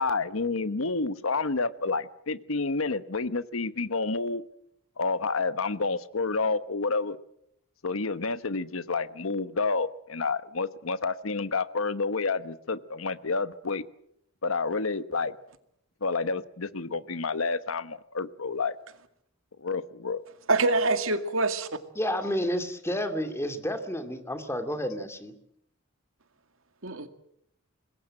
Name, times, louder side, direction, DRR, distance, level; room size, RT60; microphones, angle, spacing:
voice 1, 0.0-4.4 5.0-7.2 7.8-13.8 14.4-15.3 16.0-18.7 19.6-20.2, left 4 dB, 80° left, 14 dB, 1.1 m, -29 dB
voice 2, 20.5-21.7 26.8-27.1, right 2 dB, 75° right, 9 dB, 2.2 m, -25 dB
voice 3, 22.0-25.3, equal, 15° left, 7 dB, 2.4 m, -30 dB
25.5 x 21.0 x 7.6 m, 0.74 s
head